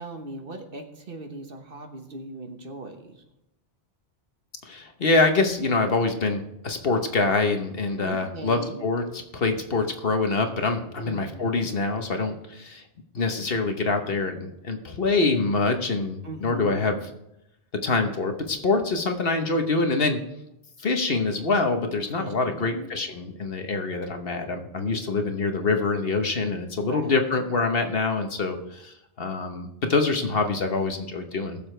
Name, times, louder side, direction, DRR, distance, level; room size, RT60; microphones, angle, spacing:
voice 1, 0.0-3.2 8.0-8.9 11.1-11.6 16.2-17.0 22.2-22.9 26.9-27.1, right 2 dB, 55° right, 5 dB, 1.3 m, -39 dB
voice 2, 4.6-12.8 13.1-17.0 17.8-20.2 20.8-31.6, left 3 dB, 55° left, 5 dB, 1.3 m, -25 dB
20.0 x 7.1 x 3.3 m, 0.84 s
omnidirectional pair, 1.2 m